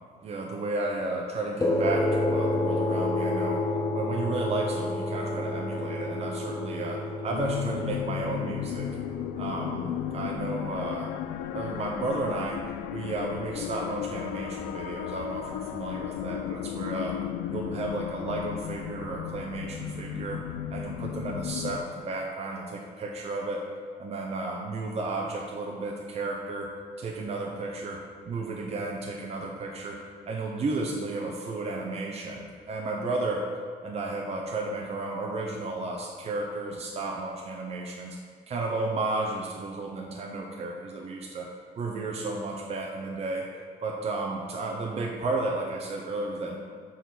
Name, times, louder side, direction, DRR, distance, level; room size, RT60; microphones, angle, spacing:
voice 1, 0.2-3.6 3.9-9.0 9.4-11.1 11.5-12.6 12.9-17.2 17.5-20.4 20.7-23.6 24.0-26.7 27.0-28.0 28.3-30.0 30.3-33.4 33.8-38.2 38.5-41.5 41.8-43.5 43.8-46.6, right 2 dB, 40° right, -1 dB, 0.8 m, -33 dB
sound 1, 1.6-10.4, left 2 dB, 20° left, 1.0 m, -30 dB
sound 2, 7.3-21.8, left 10 dB, 85° left, 0.4 m, -34 dB
7.2 x 4.3 x 5.9 m, 2.1 s
cardioid pair, 110°, 17 cm